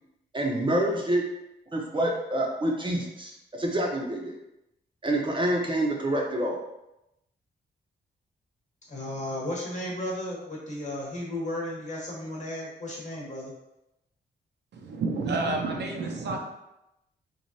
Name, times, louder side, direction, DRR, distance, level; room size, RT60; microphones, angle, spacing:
voice 1, 0.3-1.2 1.7-4.3 5.0-6.6, right 1 dB, 25° right, -1 dB, 0.7 m, -27 dB
voice 2, 8.9-13.5, left 1 dB, 40° left, -3 dB, 1.1 m, -34 dB
voice 3, 14.7-16.4, right 3 dB, 65° right, 1 dB, 0.6 m, -29 dB
3.2 x 2.4 x 2.6 m, 0.89 s
cardioid pair, 65°, 19 cm